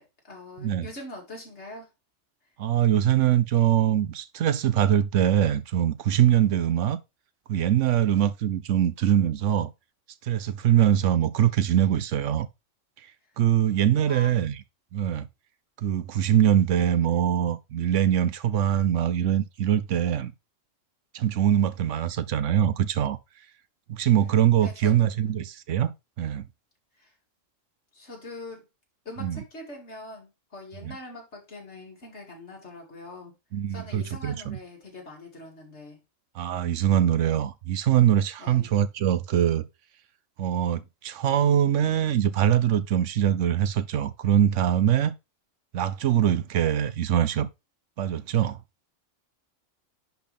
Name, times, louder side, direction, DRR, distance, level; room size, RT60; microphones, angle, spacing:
voice 1, 0.0-1.9 14.0-14.4 24.6-25.1 27.0-27.1 27.9-28.7 29.0-33.3 33.7-36.0 38.4-38.7, left 2 dB, 60° left, 3.0 m, -43 dB
voice 2, 2.6-7.0 7.5-9.7 10.2-12.5 13.4-14.6 14.9-15.3 15.8-20.3 21.1-23.2 23.9-25.9 26.2-26.5 29.2-29.4 30.8-30.9 33.5-34.6 36.3-39.7 40.4-45.1 45.7-47.5 48.0-48.6, right 10 dB, 75° right, 1.0 m, -23 dB
10.5 x 4.1 x 3.5 m
omnidirectional pair, 1.3 m